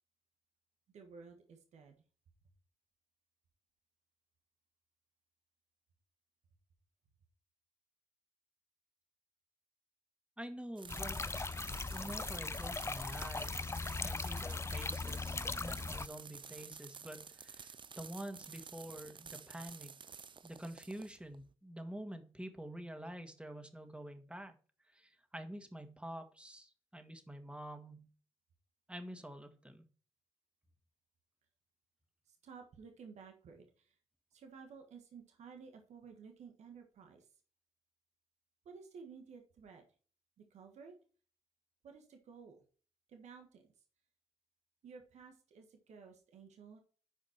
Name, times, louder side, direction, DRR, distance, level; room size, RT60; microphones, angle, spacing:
voice 1, 0.9-2.0 32.3-34.0 34.3-37.3 38.6-39.8 40.4-40.9 41.8-42.6 43.1-43.7 44.8-46.8, right 5 dB, 85° right, 4 dB, 1.4 m, -54 dB
voice 2, 10.4-19.9 20.4-24.5 24.9-28.1 28.9-29.8, right 1 dB, 10° right, 6 dB, 1.9 m, -48 dB
sound 1, 10.8-21.5, right 6 dB, 45° right, 0.4 m, -52 dB
sound 2, 10.9-16.1, left 3 dB, 25° left, 0.4 m, -39 dB
8.7 x 5.1 x 4.4 m, 0.39 s
supercardioid pair, 45°, 12 cm